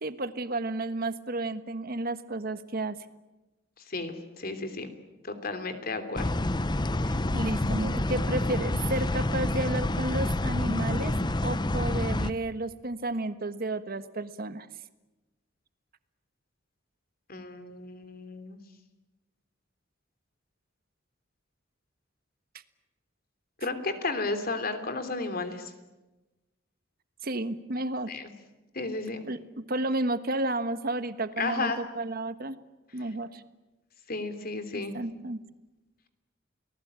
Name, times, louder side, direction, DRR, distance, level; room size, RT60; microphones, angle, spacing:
voice 1, 0.0-3.0 7.0-11.1 11.4-14.7 27.2-28.2 29.2-29.4 29.7-32.6 32.9-33.4 34.9-35.4, right 2 dB, 50° right, 11 dB, 1.4 m, -32 dB
voice 2, 3.9-4.9 5.2-6.3 17.3-18.6 23.6-25.7 28.1-28.3 28.7-29.2 31.4-31.8 34.1-34.9, left 3 dB, 50° left, 9 dB, 3.2 m, -33 dB
sound 1, 6.2-12.3, left 1 dB, 25° left, 0.8 m, -28 dB
30.0 x 19.5 x 8.9 m, 1.1 s
head